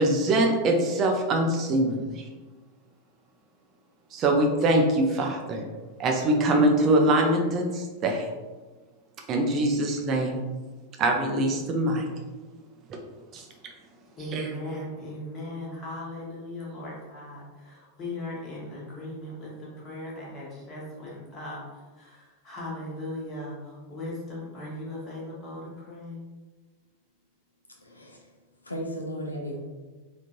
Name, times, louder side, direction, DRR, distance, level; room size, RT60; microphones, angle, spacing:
voice 1, 0.0-2.2 4.1-5.6 6.0-8.3 9.3-10.4 11.0-12.1 13.3-13.5 14.3-14.5, right 1 dB, 30° right, 2 dB, 0.4 m, -23 dB
voice 2, 14.2-26.2, left 1 dB, 30° left, -5 dB, 1.2 m, -38 dB
voice 3, 27.7-28.3 28.6-29.6, equal, 80° left, 0 dB, 0.5 m, -35 dB
3.6 x 2.4 x 2.8 m, 1.3 s
figure-of-eight pair, 90°, 0 cm